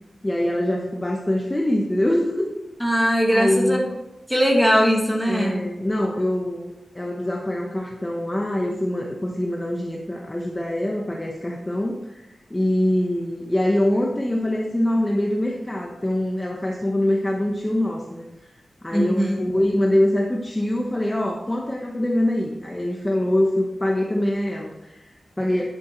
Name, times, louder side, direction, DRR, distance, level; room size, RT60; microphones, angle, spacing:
voice 1, 0.2-2.5 3.3-3.8 5.3-25.7, left 1 dB, 15° left, 0 dB, 0.9 m, -24 dB
voice 2, 2.8-3.8 4.3-5.6 18.9-19.5, equal, ahead, 0 dB, 1.8 m, -20 dB
10.5 x 7.9 x 4.4 m, 0.98 s
wide cardioid pair, 165°, 0 cm